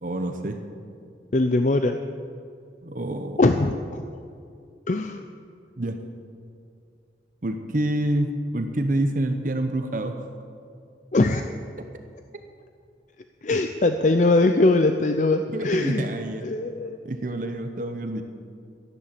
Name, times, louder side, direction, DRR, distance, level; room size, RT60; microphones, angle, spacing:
voice 1, 0.0-0.6 2.8-3.4 5.8-6.0 7.4-10.3 15.5-16.5 17.0-18.2, right 1 dB, 50° right, 6 dB, 0.8 m, -27 dB
voice 2, 1.3-2.0 3.4-4.0 4.9-5.2 11.1-11.5 13.4-16.1 16.4-17.0, left 2 dB, 45° left, 7 dB, 0.5 m, -21 dB
13.0 x 10.5 x 7.5 m, 2.4 s
head